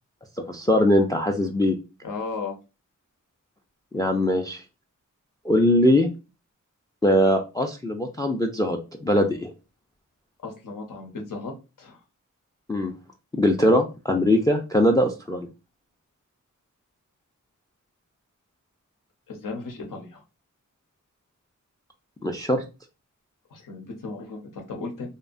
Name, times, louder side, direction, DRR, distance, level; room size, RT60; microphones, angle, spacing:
voice 1, 0.5-1.8 3.9-4.6 5.4-6.1 7.0-9.5 12.7-12.9 13.3-15.5 22.2-22.6, left 1 dB, 10° left, 5 dB, 0.3 m, -21 dB
voice 2, 2.0-2.6 10.4-12.0 19.3-20.2 23.5-25.1, left 3 dB, 85° left, 2 dB, 0.8 m, -35 dB
2.7 x 2.2 x 2.4 m, 0.29 s
wide cardioid pair, 65°, 32 cm